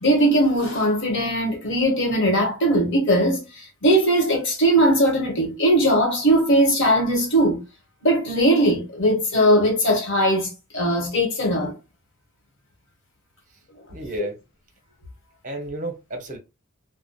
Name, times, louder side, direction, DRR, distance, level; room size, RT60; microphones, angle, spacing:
voice 1, 0.0-3.4 3.8-7.6 8.0-10.5 10.7-11.7 14.2-14.3, right 1 dB, 55° left, 1.1 m, -19 dB
voice 2, 13.9-14.4 15.4-16.4, right 2 dB, 35° right, 0.7 m, -32 dB
2.7 x 2.1 x 2.2 m
head